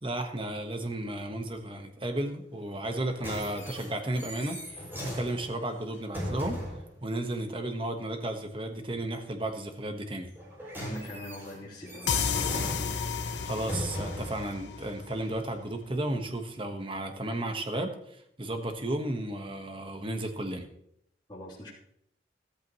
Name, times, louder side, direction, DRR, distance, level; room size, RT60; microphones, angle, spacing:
voice 1, 0.0-6.6 7.0-10.3 13.4-20.7, right 1 dB, 30° right, 6 dB, 1.3 m, -33 dB
sound 1, 2.8-6.9 10.3-14.4 15.2-15.3, equal, 10° right, 6.3 m, -39 dB
voice 2, 10.7-12.6 21.3-21.7, equal, 25° left, -8 dB, 3.3 m, -42 dB
sound 2, 12.1-15.6, left 6 dB, 90° left, 1.0 m, -32 dB
14.0 x 14.0 x 3.1 m, 0.75 s
head